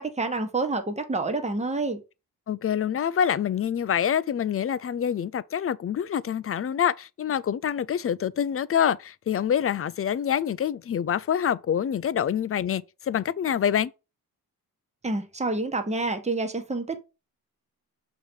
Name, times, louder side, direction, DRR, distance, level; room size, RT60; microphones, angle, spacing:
voice 1, 0.0-2.0 15.0-17.0, right 3 dB, 20° right, 1.1 m, -28 dB
voice 2, 2.5-13.9, left 9 dB, 40° left, 0.4 m, -26 dB
6.4 x 3.1 x 5.2 m
cardioid pair, 75°, 37 cm